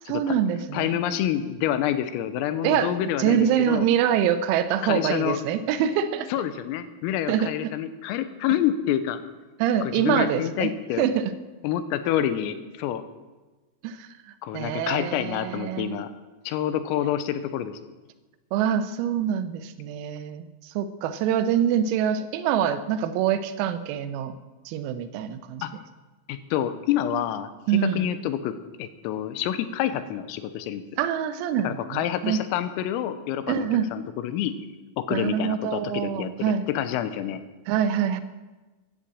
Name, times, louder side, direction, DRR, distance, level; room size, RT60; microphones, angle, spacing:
voice 1, 0.1-1.0 2.6-2.9 3.2-6.3 7.3-7.7 9.6-10.7 11.0-11.3 13.8-14.1 14.5-16.0 17.0-17.1 18.5-24.4 24.7-25.7 27.7-28.1 31.0-32.4 33.5-33.9 35.1-36.7 37.7-38.2, right 9 dB, 90° right, 11 dB, 3.7 m, -25 dB
voice 2, 0.7-3.9 4.8-5.4 6.3-9.2 9.8-11.1 11.6-13.0 14.4-16.1 16.5-17.8 25.6-25.7 26.3-30.8 31.6-34.5 35.0-37.4, left 11 dB, 90° left, 11 dB, 3.6 m, -28 dB
15.0 x 12.0 x 7.6 m, 1.2 s
omnidirectional pair, 6.0 m